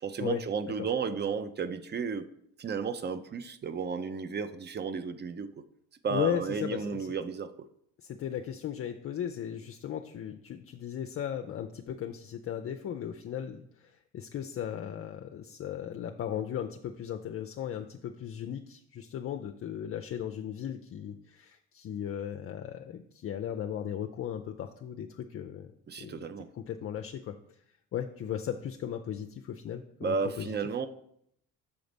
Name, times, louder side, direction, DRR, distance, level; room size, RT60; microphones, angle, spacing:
voice 1, 0.0-2.3 2.6-5.5 6.0-7.5 25.9-26.5 30.0-30.9, right 5 dB, 30° right, 12 dB, 0.6 m, -33 dB
voice 2, 6.1-7.1 8.0-25.7 26.0-26.3 26.5-27.3 27.9-30.5, left 9 dB, 45° left, 5 dB, 0.5 m, -36 dB
7.0 x 3.9 x 5.1 m, 0.72 s
supercardioid pair, 70°, 32 cm